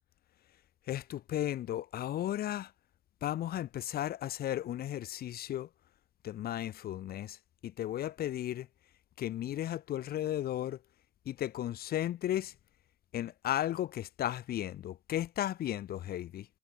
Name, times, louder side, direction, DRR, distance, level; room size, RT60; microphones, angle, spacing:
voice 1, 0.9-2.7 3.2-5.7 6.2-8.7 9.2-10.8 11.3-12.5 13.1-16.5, left 12 dB, 65° left, 4.4 m, -35 dB
cardioid pair, 110°, 17 cm